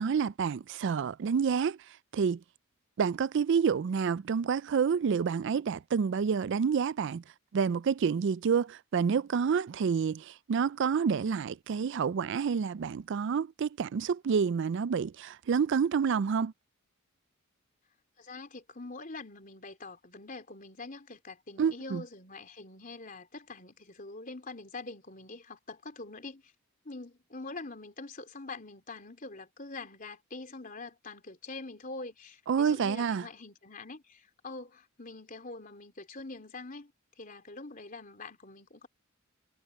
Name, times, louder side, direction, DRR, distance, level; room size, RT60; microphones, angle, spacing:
voice 1, 0.0-1.8 2.1-2.4 3.0-7.2 7.5-16.5 21.6-22.0 32.5-33.3, right 6 dB, 55° right, 0.3 m, -28 dB
voice 2, 18.2-26.5 26.9-36.9 37.2-38.9, left 3 dB, 40° left, 3.6 m, -44 dB
head